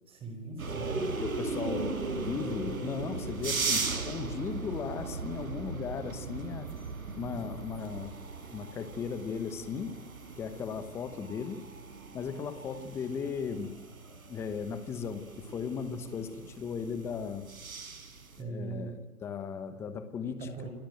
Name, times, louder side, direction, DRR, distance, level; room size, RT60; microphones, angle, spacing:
voice 1, 0.1-1.1 18.4-19.0 20.3-20.7, right 4 dB, 10° right, 5 dB, 4.6 m, -40 dB
sound 1, 0.6-18.4, right 4 dB, 65° right, 5.7 m, -38 dB
voice 2, 1.2-6.7 7.1-8.1 8.5-10.0 10.4-11.6 12.1-13.8 14.3-17.5 18.4-20.5, left 6 dB, 5° left, 11 dB, 0.9 m, -37 dB
29.0 x 20.5 x 9.1 m, 1.1 s
hypercardioid pair, 145°, 44 cm